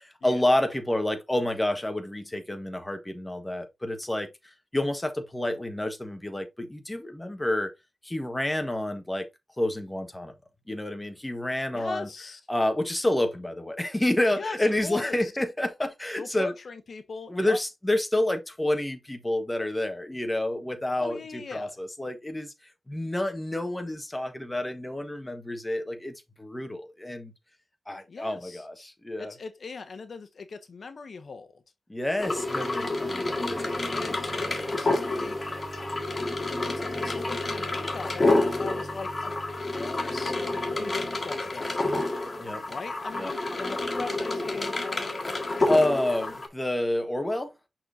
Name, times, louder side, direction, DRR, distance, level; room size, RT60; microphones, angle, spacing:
voice 1, 0.0-4.3 4.7-7.7 8.0-9.3 9.6-10.3 10.7-12.1 12.5-16.5 17.3-21.2 21.5-22.5 22.9-27.3 27.9-29.3 31.9-34.5 42.4-42.6 43.1-43.3 45.7-47.5, left 1 dB, 15° left, 1.4 m, -29 dB
voice 2, 11.7-12.4 14.3-15.3 16.2-17.6 21.0-21.8 28.1-28.6 29.2-31.6 33.9-35.5 36.6-40.4 40.8-42.3 42.7-45.1, left 4 dB, 60° left, 0.8 m, -40 dB
sound 1, 32.2-46.5, left 2 dB, 35° left, 1.8 m, -29 dB
sound 2, 32.3-42.0, right 1 dB, 20° right, 3.3 m, -43 dB
6.1 x 5.9 x 2.7 m
wide cardioid pair, 90°, 0 cm